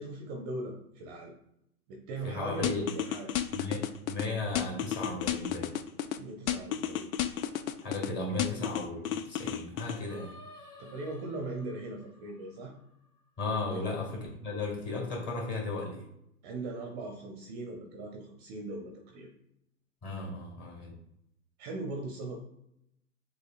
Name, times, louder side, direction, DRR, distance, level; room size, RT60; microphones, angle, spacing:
voice 1, 0.0-1.3 1.9-3.3 6.1-7.1 10.8-12.7 13.7-13.8 16.4-19.3 21.6-22.4, right 2 dB, 30° right, 2 dB, 0.6 m, -39 dB
voice 2, 2.2-2.9 3.5-5.7 7.8-10.3 13.4-16.0 20.0-20.9, left 2 dB, 25° left, -1 dB, 1.7 m, -35 dB
sound 1, 2.6-4.3 4.6-6.2 6.5-8.1 8.4-10.0, left 11 dB, 65° left, 0.6 m, -32 dB
Singing, 8.1-13.4, left 2 dB, 90° left, 1.4 m, -54 dB
6.5 x 2.8 x 2.4 m, 0.79 s
hypercardioid pair, 120°, 44 cm